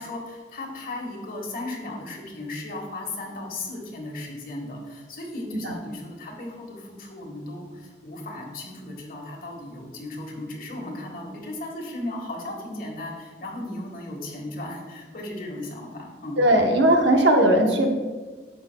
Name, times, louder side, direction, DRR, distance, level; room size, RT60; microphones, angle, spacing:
voice 1, 0.0-16.4, left 2 dB, 50° left, 0 dB, 1.4 m, -36 dB
voice 2, 16.4-18.0, right 1 dB, 80° right, 3 dB, 0.9 m, -18 dB
9.6 x 7.1 x 2.2 m, 1.4 s
head